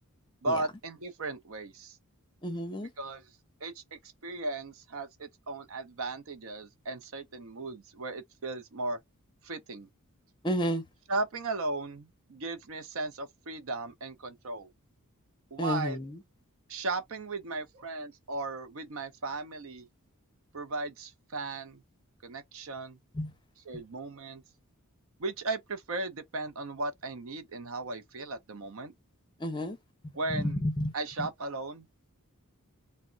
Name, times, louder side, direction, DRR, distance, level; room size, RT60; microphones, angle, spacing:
voice 1, 0.4-2.0 2.8-3.3 3.6-9.0 9.4-9.9 11.1-14.7 15.5-16.0 16.7-19.9 20.5-21.8 22.2-23.0 23.6-24.4 25.2-28.9 30.1-30.6 30.9-31.9, right 3 dB, 65° right, 0.6 m, -36 dB
voice 2, 2.4-2.9 10.4-10.8 15.6-16.1 23.2-23.3 29.4-29.8 30.3-30.9, equal, 20° left, 0.6 m, -30 dB
2.2 x 2.1 x 3.8 m
head